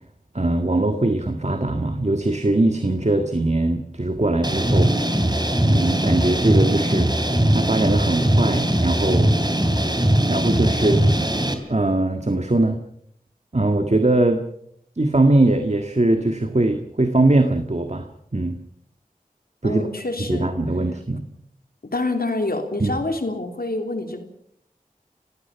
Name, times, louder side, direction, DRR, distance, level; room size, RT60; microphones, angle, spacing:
voice 1, 0.3-5.2 5.7-7.1 7.5-9.3 10.3-11.0 11.7-12.8 13.5-14.5 15.0-18.5 19.6-19.8 20.3-21.2 22.8-22.9, right 2 dB, 45° right, 6 dB, 1.8 m, -21 dB
sound 1, 4.4-11.5, right 1 dB, 30° right, 3.4 m, -20 dB
voice 2, 19.6-20.5 21.9-24.2, left 2 dB, 85° left, 5 dB, 3.3 m, -26 dB
30.0 x 16.5 x 5.9 m, 0.70 s
wide cardioid pair, 40°, 15 cm